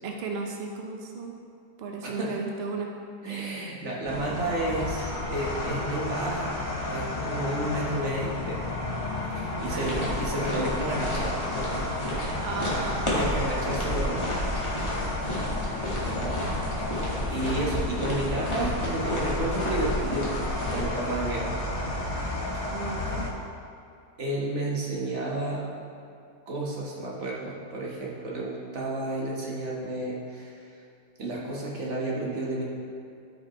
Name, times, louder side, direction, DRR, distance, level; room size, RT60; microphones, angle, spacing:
voice 1, 0.0-1.4 1.8-2.9 9.7-10.0 12.4-13.3 22.7-23.3, right 4 dB, 75° right, 1 dB, 0.5 m, -35 dB
voice 2, 3.2-6.6 6.9-8.6 9.3-11.4 13.1-14.3 16.1-16.4 16.8-20.3 20.6-21.6 22.5-22.7 24.2-25.6 26.5-30.7 31.2-32.6, right 2 dB, 45° right, -4 dB, 1.5 m, -31 dB
sound 1, 4.1-23.3, left 2 dB, 60° left, 0.3 m, -32 dB
sound 2, 9.6-20.8, equal, 20° left, 1.4 m, -32 dB
12.5 x 5.2 x 3.1 m, 2.5 s
omnidirectional pair, 1.9 m